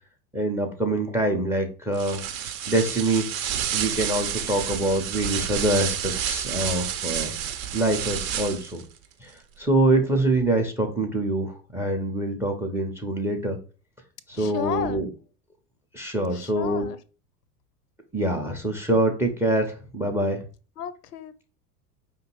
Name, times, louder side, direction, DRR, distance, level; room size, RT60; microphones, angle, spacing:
voice 1, 0.3-2.2 2.7-3.3 3.7-7.3 7.7-8.8 9.2-13.6 14.3-15.1 15.9-16.9 18.1-20.4, right 1 dB, 5° right, 0.5 m, -25 dB
sound 1, 1.9-8.8, right 9 dB, 55° right, 0.7 m, -30 dB
voice 2, 14.3-15.0 16.3-17.0 20.8-21.4, left 9 dB, 75° left, 0.6 m, -33 dB
5.1 x 2.9 x 2.9 m
figure-of-eight pair, 80°, 48 cm